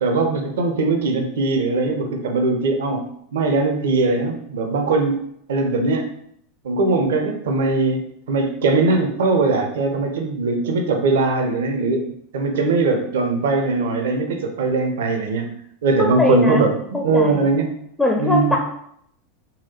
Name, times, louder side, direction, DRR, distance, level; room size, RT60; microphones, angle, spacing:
voice 1, 0.0-5.2 5.5-6.1 6.6-12.0 12.3-15.5 15.8-17.7 18.2-18.6, right 3 dB, 65° right, 5 dB, 0.5 m, -20 dB
voice 2, 16.0-16.7 16.9-17.5 18.0-18.6, left 2 dB, 5° left, 0 dB, 0.4 m, -21 dB
3.9 x 2.2 x 2.9 m, 0.71 s
figure-of-eight pair, 85°, 0 cm